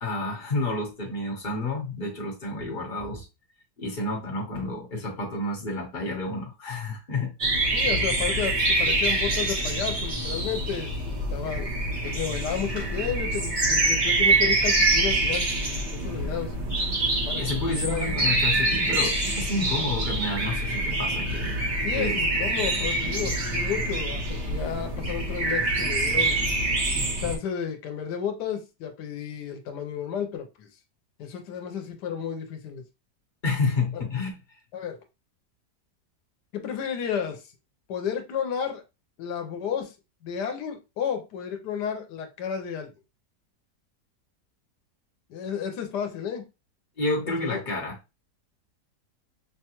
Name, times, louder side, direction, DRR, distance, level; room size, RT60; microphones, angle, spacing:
voice 1, 0.0-3.3 3.8-7.3 17.4-21.7 21.9-22.2 33.4-34.3 47.0-48.0, left 2 dB, 35° left, 1.2 m, -30 dB
sound 1, 7.4-27.4, right 2 dB, 30° right, 0.9 m, -25 dB
voice 2, 7.7-11.8 12.0-15.5 15.9-16.5 17.3-18.2 21.8-26.4 27.2-30.7 31.2-32.8 33.9-34.0 34.7-35.0 36.5-37.4 37.9-38.8 39.2-39.9 40.2-42.9 45.3-46.5 47.4-47.6, left 8 dB, 90° left, 1.3 m, -32 dB
5.7 x 2.3 x 2.9 m
omnidirectional pair, 1.7 m